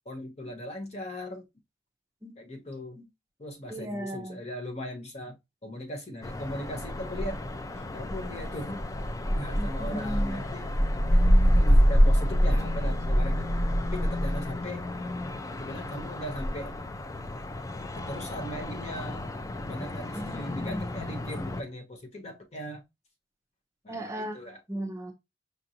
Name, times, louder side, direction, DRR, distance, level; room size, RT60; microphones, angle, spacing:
voice 1, 0.1-1.4 2.4-3.0 3.4-5.4 5.6-7.4 7.9-8.8 9.3-10.7 11.1-13.5 13.9-14.9 15.6-16.7 17.9-19.3 19.7-22.8 23.8-24.6, left 1 dB, 35° left, 0.8 m, -39 dB
voice 2, 3.7-4.4 9.6-10.4 20.1-20.8 23.9-24.4 24.7-25.1, equal, 15° right, 0.6 m, -36 dB
sound 1, 6.2-21.6, equal, 20° left, 0.4 m, -27 dB
5.2 x 2.5 x 2.8 m
head